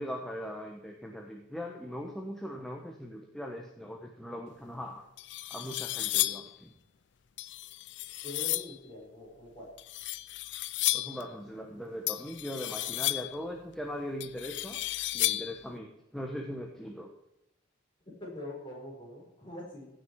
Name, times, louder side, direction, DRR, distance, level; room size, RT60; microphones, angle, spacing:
voice 1, 0.0-5.0 5.5-6.7 10.9-14.8 15.1-17.1, equal, ahead, 1 dB, 0.9 m, -40 dB
sound 1, 4.7-4.8 5.2-6.6 7.4-8.8 9.8-11.2 12.1-13.4 14.2-15.6, left 16 dB, 65° left, 0.4 m, -33 dB
voice 2, 8.2-9.7 18.2-19.9, left 1 dB, 25° left, -4 dB, 4.5 m, -43 dB
16.0 x 6.2 x 4.6 m, 0.88 s
head